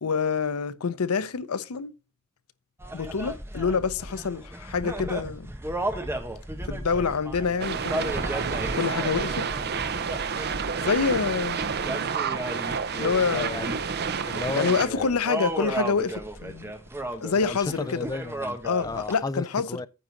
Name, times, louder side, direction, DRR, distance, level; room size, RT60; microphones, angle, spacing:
voice 1, 0.0-1.9 2.9-5.5 6.7-8.1 8.7-9.5 10.8-11.6 13.0-13.6 14.6-16.7 17.2-17.8 18.6-19.7, left 5 dB, 90° left, 0.6 m, -26 dB
sound 1, 2.8-19.1, right 1 dB, 10° right, 1.1 m, -35 dB
sound 2, 7.6-14.8, right 6 dB, 50° right, 0.7 m, -29 dB
Keyboard (musical), 8.3-11.2, right 4 dB, 80° right, 1.5 m, -46 dB
voice 2, 13.3-13.8 14.2-15.2 17.3-19.9, left 2 dB, 15° left, 0.4 m, -34 dB
9.5 x 3.8 x 7.1 m
head